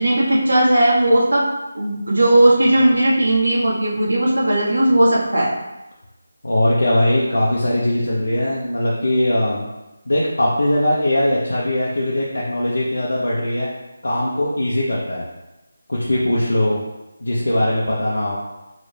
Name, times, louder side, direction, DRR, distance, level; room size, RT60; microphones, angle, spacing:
voice 1, 0.0-1.5 1.7-5.5, right 1 dB, 80° right, -4 dB, 1.1 m, -16 dB
voice 2, 6.4-9.7 10.1-13.7 14.0-15.2 15.9-16.8 17.2-18.4, left 1 dB, 85° left, -6 dB, 0.7 m, -20 dB
3.1 x 2.7 x 3.3 m, 1.0 s
figure-of-eight pair, 165°, 0 cm